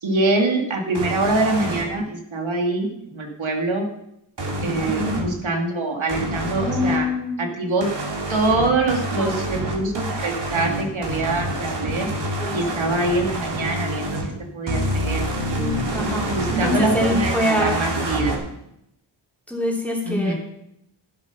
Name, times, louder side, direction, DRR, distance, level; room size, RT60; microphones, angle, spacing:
voice 1, 0.0-3.9 4.6-7.1 7.4-7.9 8.3-12.1 12.5-14.2 14.5-15.7 16.3-18.4 20.1-20.3, right 2 dB, 85° right, 2 dB, 2.1 m, -24 dB
sound 1, 1.0-1.8 4.4-5.3 6.1-7.0 7.8-14.3 14.7-18.4, right 1 dB, 65° right, 2.7 m, -27 dB
voice 2, 4.8-5.2 6.6-7.5 9.1-9.4 12.4-12.7 15.9-17.8 19.5-20.3, left 1 dB, 5° left, -1 dB, 2.9 m, -25 dB
12.0 x 7.7 x 5.8 m, 0.80 s
wide cardioid pair, 105°, 46 cm